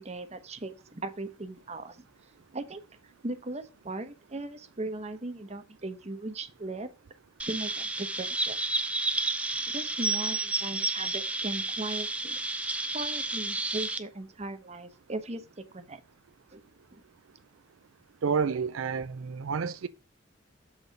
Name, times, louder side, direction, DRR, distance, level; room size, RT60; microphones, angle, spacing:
voice 1, 0.0-2.0 2.5-6.9 7.4-8.6 9.7-12.4 12.9-16.0 16.5-16.6 16.9-17.0, right 2 dB, 30° right, 0.9 m, -38 dB
Chirp tweet, 7.4-14.0, right 2 dB, 5° right, 0.5 m, -31 dB
voice 2, 18.2-19.9, right 5 dB, 80° right, 0.4 m, -29 dB
7.4 x 4.0 x 5.1 m
head